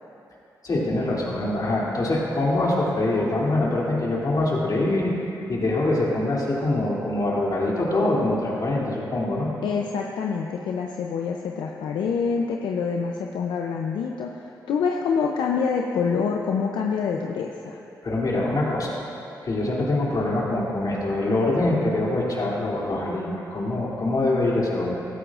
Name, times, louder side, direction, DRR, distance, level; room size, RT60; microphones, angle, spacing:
voice 1, 0.6-5.1 5.5-9.5 18.0-19.0 19.4-25.0, left 2 dB, 55° left, -4 dB, 2.9 m, -24 dB
voice 2, 9.6-17.8, left 5 dB, 85° left, 1 dB, 0.6 m, -26 dB
16.0 x 13.5 x 2.5 m, 2.8 s
cardioid pair, 55°, 8 cm